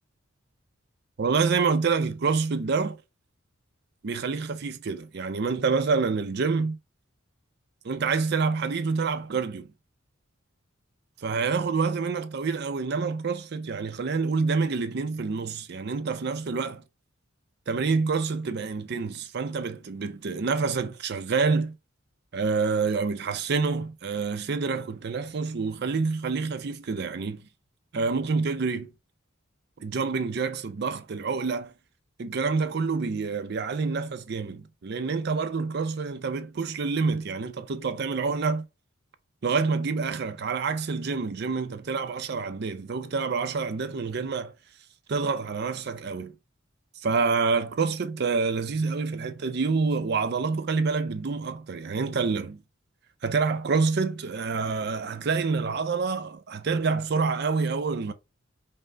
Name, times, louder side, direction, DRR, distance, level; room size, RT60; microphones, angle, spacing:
voice 1, 1.2-3.0 4.0-6.8 7.8-9.7 11.2-16.8 17.7-21.8 22.3-27.5 27.9-28.9 29.8-31.7 32.2-38.7 39.4-44.5 45.1-46.3 47.0-52.6 53.2-58.1, right 4 dB, 50° right, 0.5 m, -27 dB
5.4 x 2.1 x 3.7 m
head